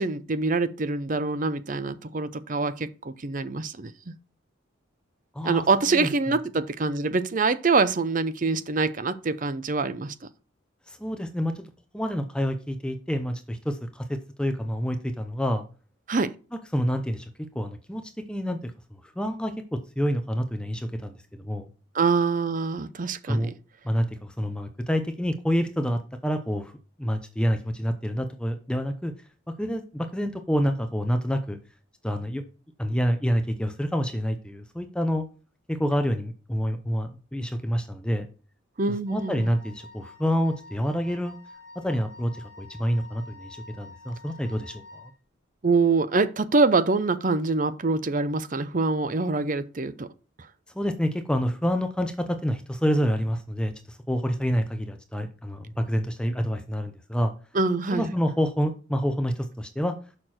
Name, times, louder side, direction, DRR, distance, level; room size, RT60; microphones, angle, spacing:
voice 1, 0.0-4.1 5.4-10.1 16.1-16.3 21.9-23.5 38.8-39.5 45.6-50.1 57.5-58.1, right 3 dB, 40° right, 0.6 m, -25 dB
voice 2, 5.3-6.3 10.9-11.7 11.9-15.6 16.7-21.7 23.3-23.5 23.8-26.7 27.0-29.1 29.6-31.6 32.0-32.4 32.8-35.3 35.7-38.3 39.1-41.4 41.8-45.1 50.7-57.3 57.9-60.0, equal, 5° left, 0.7 m, -28 dB
Wind instrument woodwind instrument, 39.1-45.2, left 3 dB, 15° right, 1.5 m, -48 dB
6.7 x 6.0 x 4.3 m
head